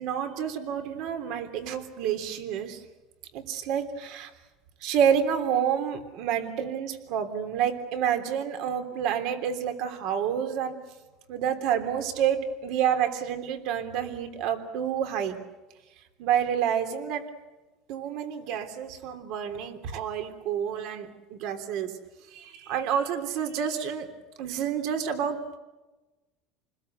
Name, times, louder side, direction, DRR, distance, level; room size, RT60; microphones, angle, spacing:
voice 1, 0.0-2.8 3.3-4.3 4.8-10.7 11.3-15.4 16.2-17.3 17.9-21.9 22.3-24.1 24.4-25.6, right 8 dB, 60° right, 7 dB, 3.3 m, -29 dB
29.0 x 20.5 x 8.0 m, 1.1 s
cardioid pair, 155°, 0 cm